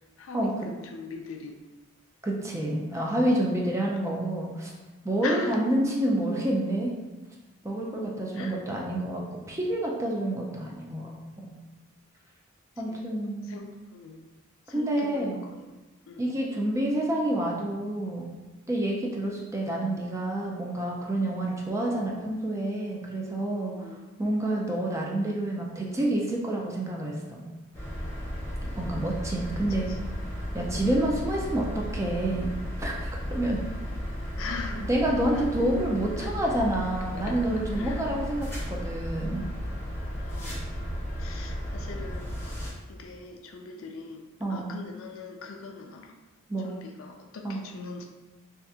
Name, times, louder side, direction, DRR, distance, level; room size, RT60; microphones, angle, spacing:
voice 1, 0.2-1.6 2.9-3.2 5.2-5.7 8.3-8.6 12.9-13.0 13.4-14.3 14.7-15.7 16.1-16.2 23.7-24.0 29.7-30.0 34.3-34.9 35.3-35.4 36.2-36.3 37.2-37.4 37.7-38.1 40.1-40.9 41.2-42.4 42.9-46.2 46.6-48.1, left 4 dB, 65° left, 3 dB, 0.4 m, -41 dB
voice 2, 2.2-4.7 5.0-6.9 7.6-11.5 12.8-13.6 14.7-15.4 16.2-18.3 18.7-23.7 24.2-27.4 28.7-29.9 30.5-32.5 32.8-33.6 34.9-39.5 44.4-44.7 46.5-46.7 47.4-47.6, right 1 dB, 15° right, -2 dB, 0.4 m, -28 dB
sound 1, 27.7-42.7, equal, 10° left, 0.8 m, -34 dB
2.7 x 2.4 x 3.5 m, 1.2 s
head